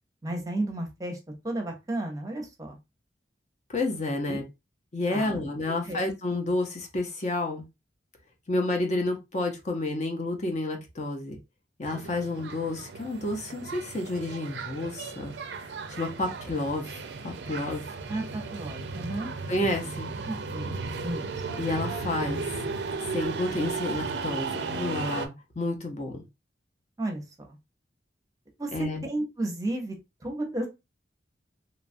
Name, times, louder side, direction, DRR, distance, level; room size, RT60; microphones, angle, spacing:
voice 1, 0.2-1.2 1.4-2.8 4.3-4.4 5.1-5.4 5.7-6.0 18.1-19.3 20.3-20.7 21.0-21.3 27.0-27.6 28.6-30.7, right 1 dB, 20° right, 3 dB, 0.6 m, -33 dB
voice 2, 3.7-4.4 4.9-7.7 8.5-11.4 11.8-15.3 15.9-17.8 19.5-20.1 21.6-22.4 23.1-26.2 28.7-29.0, left 2 dB, 40° left, 3 dB, 0.6 m, -30 dB
sound 1, 11.8-25.3, right 4 dB, 75° right, 0.4 m, -35 dB
3.0 x 2.3 x 2.5 m, 0.23 s
head